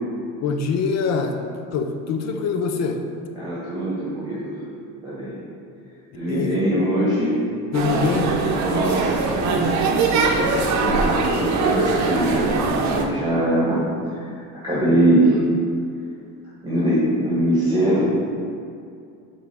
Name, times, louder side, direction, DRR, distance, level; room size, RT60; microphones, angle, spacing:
voice 1, 0.4-1.3 1.7-3.0 6.3-6.6 7.7-8.3, left 5 dB, 50° left, 6 dB, 0.6 m, -23 dB
voice 2, 3.4-4.5 5.0-5.4 6.1-7.4 8.6-9.2 10.3-12.5 12.9-13.8 14.6-15.4 16.6-18.1, right 1 dB, 10° right, -9 dB, 1.3 m, -22 dB
sound 1, 7.7-13.0, right 4 dB, 50° right, 0.7 m, -21 dB
5.4 x 3.8 x 4.8 m, 2.4 s
cardioid pair, 135°, 35 cm